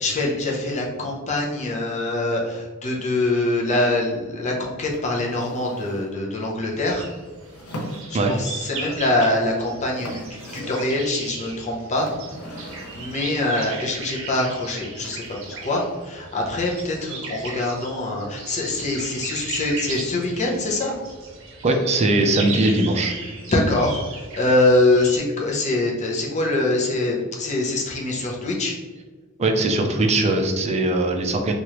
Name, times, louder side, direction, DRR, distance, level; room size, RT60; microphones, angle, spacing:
voice 1, 0.0-7.1 8.4-10.2 10.5-12.1 12.6-20.9 23.5-28.7, left 2 dB, 35° left, -2 dB, 0.6 m, -24 dB
sound 1, 4.9-6.2 7.4-8.5 9.5-9.6 9.8-11.0 12.0-13.5 15.0-15.7, equal, 85° left, 0.6 m, -39 dB
sound 2, 6.7-25.2, right 4 dB, 60° right, 0.7 m, -37 dB
voice 2, 21.6-23.2 29.4-31.5, right 2 dB, 30° right, 3 dB, 0.4 m, -20 dB
3.1 x 2.5 x 2.9 m, 1.3 s
head